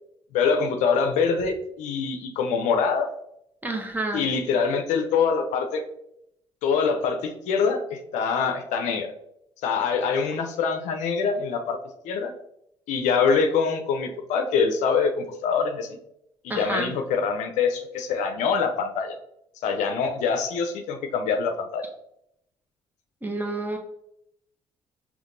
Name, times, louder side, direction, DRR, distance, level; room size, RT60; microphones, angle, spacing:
voice 1, 0.3-3.1 4.1-5.8 6.6-9.1 9.6-11.8 12.0-12.3 12.9-15.9 16.4-19.2 19.6-21.8, left 5 dB, 75° left, 5 dB, 0.6 m, -24 dB
voice 2, 3.6-4.3 16.5-16.9 23.2-23.8, right 2 dB, 15° right, 2 dB, 1.0 m, -29 dB
5.0 x 3.2 x 2.6 m, 0.78 s
hypercardioid pair, 55°, 13 cm